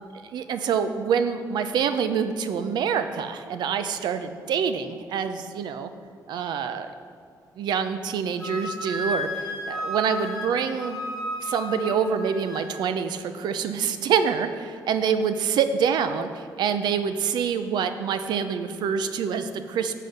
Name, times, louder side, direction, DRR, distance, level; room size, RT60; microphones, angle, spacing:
voice 1, 0.3-5.9 6.3-6.9 7.6-11.0 11.4-19.9, right 7 dB, 80° right, 9 dB, 0.7 m, -26 dB
Wind instrument woodwind instrument, 8.4-12.7, left 1 dB, 5° left, 2.8 m, -33 dB
12.0 x 7.6 x 5.3 m, 2.1 s
cardioid pair, 150°, 7 cm